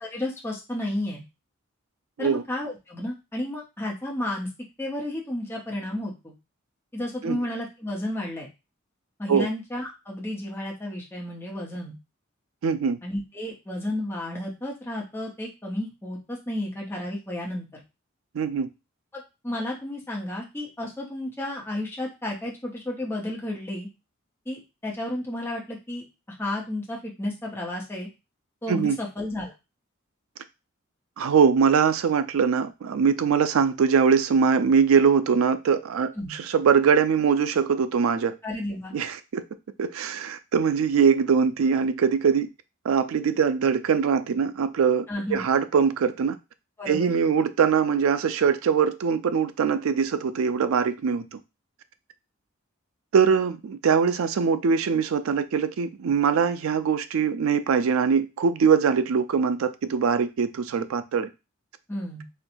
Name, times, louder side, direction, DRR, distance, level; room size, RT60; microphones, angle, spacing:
voice 1, 0.0-1.2 2.2-4.5 4.8-6.3 6.9-8.5 9.2-11.9 13.0-17.7 19.1-23.9 24.5-26.1 26.4-28.1 28.6-29.5 36.2-36.3 38.4-38.9 45.1-45.4 46.8-47.1 61.9-62.2, left 1 dB, 10° left, 0.9 m, -32 dB
voice 2, 12.6-13.0 18.3-18.7 28.7-29.0 31.2-38.4 38.9-39.4 39.8-42.5 42.8-46.4 46.9-51.4 53.1-61.3, right 6 dB, 85° right, 0.4 m, -22 dB
4.3 x 2.3 x 2.6 m
head